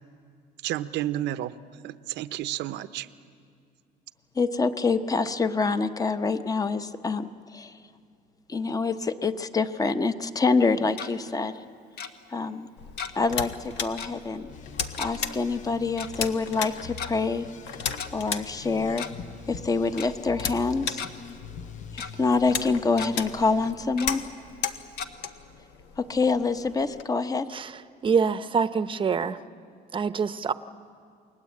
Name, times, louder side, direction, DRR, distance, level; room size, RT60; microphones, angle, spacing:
voice 1, 0.6-1.6 1.8-3.1, right 13 dB, 80° right, 13 dB, 0.8 m, -31 dB
voice 2, 4.4-7.8 8.5-11.5 12.3-12.7 13.1-14.5 15.0-17.5 18.1-19.1 19.5-21.0 21.9-24.2 26.0-27.5, left 4 dB, 20° left, 10 dB, 0.9 m, -26 dB
Tick-tock, 10.7-11.1 12.0-12.1 13.0-13.3 13.6-13.7 14.0-14.2 15.0-15.1 16.0-16.1 16.8-17.1 18.0-18.1 18.8-19.3 19.5-19.6 20.0-20.1 20.6-21.1 21.6-22.1 22.5-22.6 22.9-23.1 24.0-24.1 25.0-25.1, left 6 dB, 65° left, 1.5 m, -36 dB
sound 1, 12.8-27.0, left 6 dB, 85° left, 1.2 m, -36 dB
sound 2, 14.5-23.7, left 6 dB, 45° left, 0.8 m, -45 dB
voice 3, 27.5-29.4 29.9-30.5, right 6 dB, 30° right, 13 dB, 0.8 m, -26 dB
29.0 x 21.0 x 8.5 m, 2.3 s
cardioid pair, 120°, 18 cm